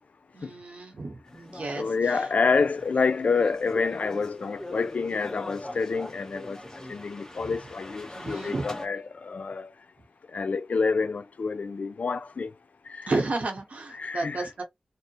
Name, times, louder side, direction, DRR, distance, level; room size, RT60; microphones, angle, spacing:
voice 1, 0.3-2.2 7.4-7.5 8.1-8.7 13.1-14.6, right 3 dB, 70° right, 0.8 m, -32 dB
sound 1, 1.3-8.9, left 1 dB, 25° left, 0.7 m, -42 dB
voice 2, 1.8-6.6 6.9-9.7 10.3-12.5 12.9-13.1 13.9-14.5, left 4 dB, 80° left, 0.4 m, -28 dB
2.7 x 2.0 x 2.7 m
wide cardioid pair, 60°, 2 cm